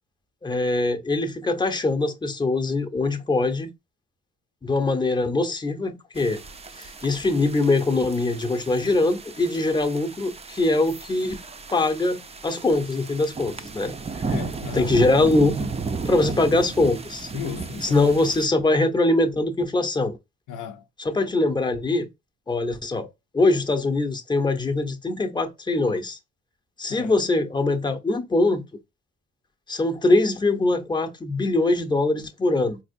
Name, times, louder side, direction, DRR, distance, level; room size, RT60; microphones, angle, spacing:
voice 1, 0.4-3.7 4.6-6.4 6.8-11.4 11.7-13.9 14.7-15.7 16.0-17.3 17.8-20.2 21.0-22.1 22.5-23.1 23.3-26.2 26.8-28.6 29.7-32.8, left 2 dB, 15° left, 0.8 m, -22 dB
sound 1, 6.2-18.5, right 4 dB, 20° right, 0.5 m, -35 dB
voice 2, 14.3-14.9 17.3-18.1 20.5-20.9 26.9-27.2, left 8 dB, 90° left, 0.7 m, -34 dB
4.1 x 2.4 x 2.5 m
cardioid pair, 90°, 30 cm